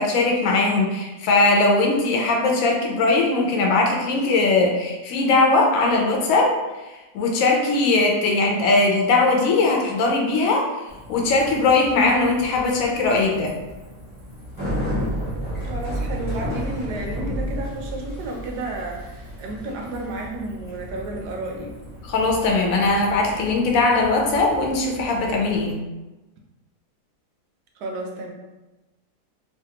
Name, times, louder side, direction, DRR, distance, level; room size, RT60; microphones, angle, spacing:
voice 1, 0.0-6.5 7.1-10.7 11.1-13.5 22.0-25.8, left 3 dB, 65° left, 0 dB, 0.9 m, -20 dB
Bicycle, 10.9-25.7, equal, 20° right, 0.6 m, -33 dB
voice 2, 15.6-21.8 27.8-28.3, right 2 dB, 80° right, 1 dB, 1.2 m, -32 dB
3.2 x 2.3 x 2.8 m, 1.1 s
omnidirectional pair, 1.8 m